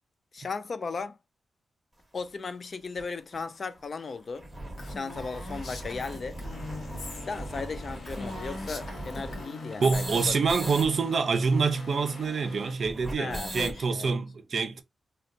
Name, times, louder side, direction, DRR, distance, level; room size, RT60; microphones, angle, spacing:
voice 1, 0.3-1.2 2.1-4.5 4.9-6.4 7.2-10.4 13.2-14.2, left 4 dB, 40° left, 0.3 m, -36 dB
sound 1, 2.2-2.3 3.0-3.1 3.3-3.4 3.7-3.8 4.2-10.9 11.1-11.2 11.4-13.8, right 1 dB, ahead, 1.0 m, -40 dB
Female speech woman speaking, 4.8-7.3 7.6-7.7 8.0-10.0, left 2 dB, 60° left, 0.9 m, -41 dB
sound 2, 6.5-12.7, left 4 dB, 80° left, 0.7 m, -47 dB
voice 2, 9.8-14.8, right 5 dB, 55° right, 0.5 m, -26 dB
3.7 x 2.2 x 2.5 m
wide cardioid pair, 145°, 0 cm